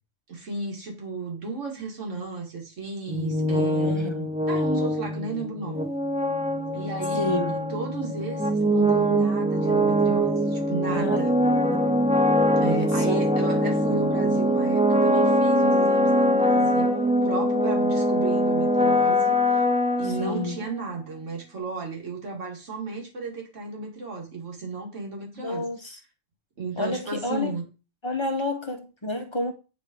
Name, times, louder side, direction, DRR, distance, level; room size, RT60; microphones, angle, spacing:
voice 1, 0.3-5.8 6.7-7.3 7.7-11.4 12.6-19.6 20.0-25.7 26.6-27.6, right 3 dB, 75° right, 2.1 m, -34 dB
sound 1, 3.1-20.7, equal, 10° right, 0.3 m, -23 dB
voice 2, 3.8-4.2 7.2-7.6 10.9-11.3 11.6-12.3 12.6-13.2 20.0-20.6 25.4-26.0 26.8-27.6 28.0-29.5, left 2 dB, 30° left, 0.6 m, -30 dB
8.4 x 3.4 x 5.0 m
omnidirectional pair, 1.3 m